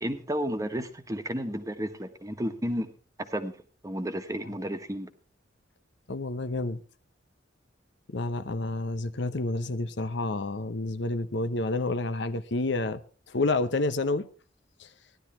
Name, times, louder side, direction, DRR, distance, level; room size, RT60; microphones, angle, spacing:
voice 1, 0.0-2.9 3.2-3.6 3.8-5.1, equal, 20° right, 1.4 m, -32 dB
voice 2, 6.1-6.8 8.1-13.0 13.3-14.3 14.8-14.9, left 2 dB, 65° left, 0.9 m, -29 dB
16.0 x 11.5 x 4.4 m
head